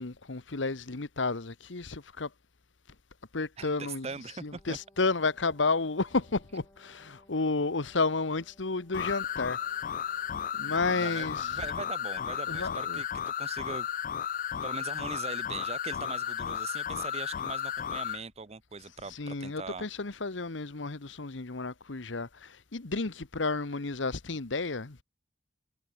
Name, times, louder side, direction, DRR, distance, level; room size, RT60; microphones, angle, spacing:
voice 1, 0.0-2.3 3.3-9.6 10.0-10.1 10.5-11.7 12.5-13.0 19.0-25.0, left 3 dB, 75° left, 1.2 m, -32 dB
voice 2, 3.6-4.8 10.7-13.9 14.2-19.9, right 4 dB, 35° right, 0.8 m, -41 dB
Wind instrument woodwind instrument, 4.4-12.5, left 1 dB, 15° left, 3.6 m, -63 dB
sound 1, 8.9-18.2, left 9 dB, 45° left, 0.4 m, -34 dB
head